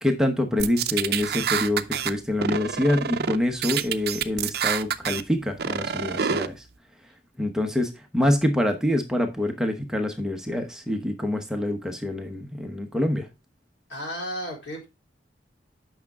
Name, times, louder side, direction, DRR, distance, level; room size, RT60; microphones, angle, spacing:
voice 1, 0.0-6.6 7.4-13.3, left 1 dB, 5° right, 0.9 m, -26 dB
sound 1, 0.6-2.1 2.4-3.4 3.6-5.2 5.6-6.5, right 7 dB, 60° right, 0.5 m, -27 dB
voice 2, 13.9-14.9, equal, 80° left, 3.6 m, -33 dB
8.6 x 5.9 x 3.5 m
head